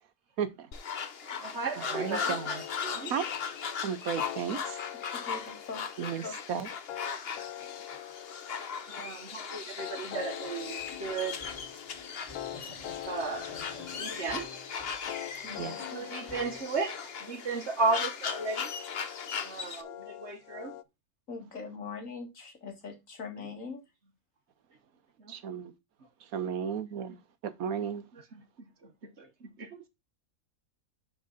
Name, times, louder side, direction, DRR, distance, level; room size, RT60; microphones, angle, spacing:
voice 1, 0.4-0.7 1.9-2.6 3.1-3.3 3.8-4.8 6.0-6.7 15.6-15.7 25.3-25.7 26.2-28.0, right 7 dB, 75° right, 1.3 m, -34 dB
sound 1, 0.7-19.8, left 6 dB, 50° left, 1.0 m, -38 dB
voice 2, 1.4-3.1 8.9-11.5 13.0-13.6 14.0-14.5 15.3-15.4 15.9-18.7 19.4-20.7 25.2-25.3 29.0-29.9, right 3 dB, 50° right, 1.5 m, -35 dB
sound 2, 1.9-20.8, left 13 dB, 85° left, 1.1 m, -44 dB
voice 3, 5.1-5.8 6.2-6.3 15.4-15.8 21.3-23.8, left 5 dB, 65° left, 2.5 m, -41 dB
sound 3, 10.6-16.6, left 4 dB, 15° left, 4.0 m, -49 dB
11.5 x 4.8 x 4.0 m
omnidirectional pair, 1.5 m